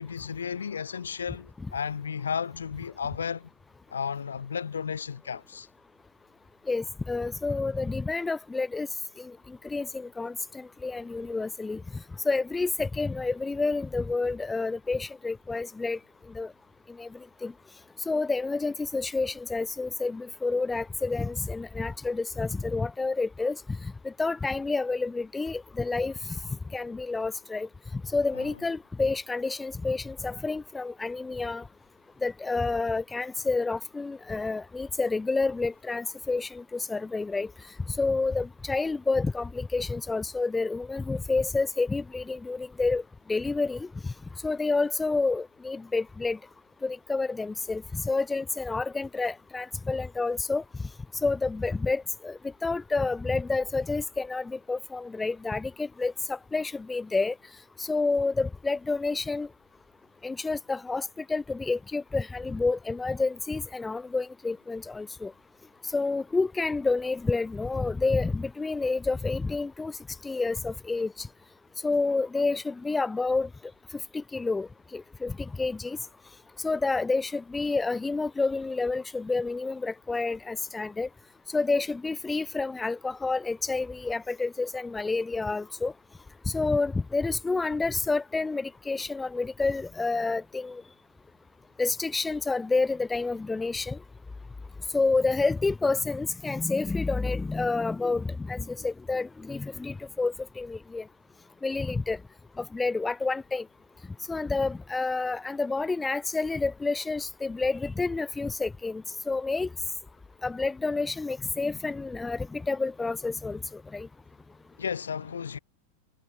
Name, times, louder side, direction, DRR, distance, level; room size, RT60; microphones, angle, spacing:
voice 1, 0.0-3.5 3.9-5.7 28.3-28.6 114.8-115.6, left 7 dB, 70° left, 0.7 m, -33 dB
voice 2, 6.7-8.9 9.2-11.8 12.2-16.0 16.3-16.5 17.0-17.1 17.4-17.5 18.1-23.6 24.0-26.1 26.7-31.6 32.2-37.5 38.0-43.0 43.3-43.9 44.4-46.4 46.8-50.6 51.2-57.3 57.8-59.5 60.2-65.3 65.9-69.9 70.2-71.3 71.8-73.5 74.1-76.0 76.6-81.1 81.5-85.9 86.5-90.8 91.8-94.0 94.9-101.0 101.6-102.2 102.6-103.6 104.3-109.7 110.4-114.1, left 3 dB, 10° left, 0.6 m, -29 dB
figure-of-eight pair, 90°, 0 cm